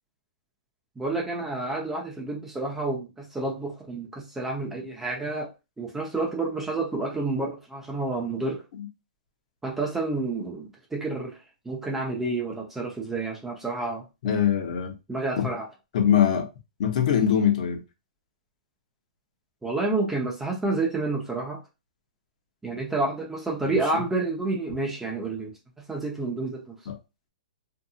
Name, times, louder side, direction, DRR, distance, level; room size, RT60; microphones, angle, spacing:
voice 1, 1.0-8.6 9.6-11.4 11.6-14.1 15.1-15.7 19.6-21.6 22.6-25.5 25.9-26.8, right 2 dB, 5° right, 0.7 m, -29 dB
voice 2, 14.2-14.9 15.4-15.5 15.9-16.5 16.8-17.8 23.7-23.8 26.9-27.0, left 9 dB, 55° left, 0.8 m, -22 dB
2.7 x 2.6 x 2.4 m
hypercardioid pair, 145°, 5 cm